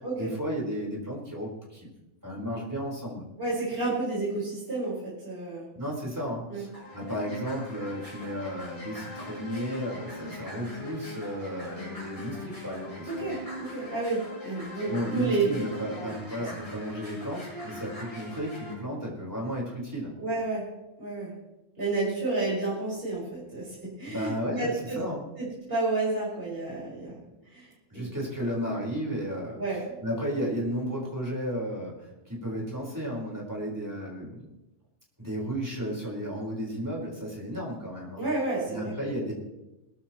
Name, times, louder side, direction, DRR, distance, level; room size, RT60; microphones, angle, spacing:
voice 1, 0.2-1.9 2.2-3.2 5.7-13.3 14.8-20.1 24.1-25.2 27.9-29.6 30.0-34.5 35.2-38.2 38.7-39.3, equal, 15° right, -4 dB, 4.8 m, -33 dB
voice 2, 3.4-5.7 6.5-6.7 13.1-15.6 15.9-16.1 20.2-20.6 21.0-21.3 21.8-25.0 25.4-27.2 27.5-27.7 27.9-28.1 29.6-30.0 38.2-39.2, right 3 dB, 50° right, -8 dB, 5.8 m, -31 dB
sound 1, 6.7-18.7, left 1 dB, 30° left, 5.6 m, -41 dB
20.5 x 14.0 x 3.2 m, 0.95 s
omnidirectional pair, 1.2 m